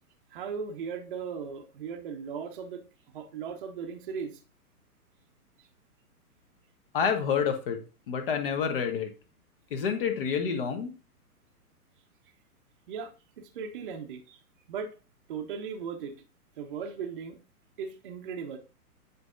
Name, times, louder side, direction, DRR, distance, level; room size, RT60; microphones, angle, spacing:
voice 1, 0.3-2.8 3.1-4.4 12.9-14.4 14.7-14.9 15.3-16.1 16.6-17.4 17.8-18.6, right 6 dB, 35° right, 4 dB, 0.8 m, -37 dB
voice 2, 6.9-7.8 8.1-9.1 9.7-10.9, left 6 dB, 35° left, 6 dB, 1.2 m, -28 dB
9.4 x 4.1 x 2.5 m, 0.34 s
figure-of-eight pair, 120°, 46 cm